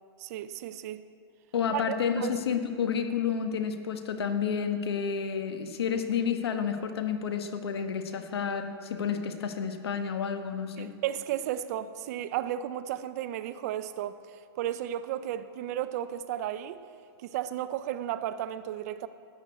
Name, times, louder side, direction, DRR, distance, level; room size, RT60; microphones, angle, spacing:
voice 1, 0.2-1.0 1.7-2.4 10.8-16.8 17.2-19.1, right 11 dB, 40° right, 13 dB, 0.6 m, -34 dB
voice 2, 1.5-11.0, left 7 dB, 75° left, 7 dB, 1.4 m, -30 dB
13.0 x 9.1 x 8.3 m, 2.4 s
hypercardioid pair, 155°, 13 cm